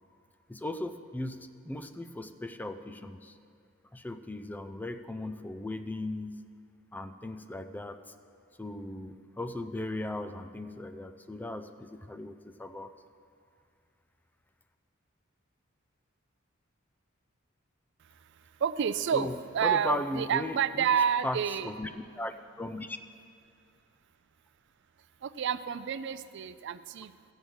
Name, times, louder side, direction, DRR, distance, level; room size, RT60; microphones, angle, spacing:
voice 1, 0.5-3.3 3.9-6.4 6.9-8.0 8.6-13.0 19.1-19.4 19.6-20.9 21.2-21.9 22.2-23.0, left 1 dB, 10° left, 9 dB, 0.4 m, -37 dB
voice 2, 18.6-19.3 19.5-21.7 25.2-27.1, right 8 dB, 60° right, 13 dB, 0.4 m, -29 dB
15.0 x 7.2 x 6.2 m, 2.3 s
head